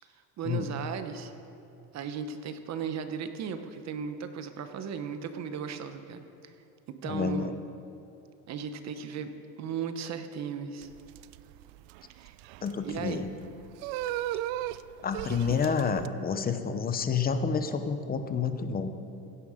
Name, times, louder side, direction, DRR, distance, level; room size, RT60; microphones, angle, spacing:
voice 1, 0.4-1.3 1.9-6.5 7.0-7.5 8.5-9.3 9.6-10.9 12.1-12.4 12.8-13.3, right 7 dB, 40° right, 9 dB, 0.9 m, -36 dB
voice 2, 7.0-7.5 12.6-13.3 15.0-18.9, left 6 dB, 20° left, 9 dB, 0.6 m, -29 dB
sound 1, 10.8-16.1, right 14 dB, 75° right, 0.5 m, -37 dB
16.0 x 9.5 x 5.0 m, 2.9 s
cardioid pair, 150°, 43 cm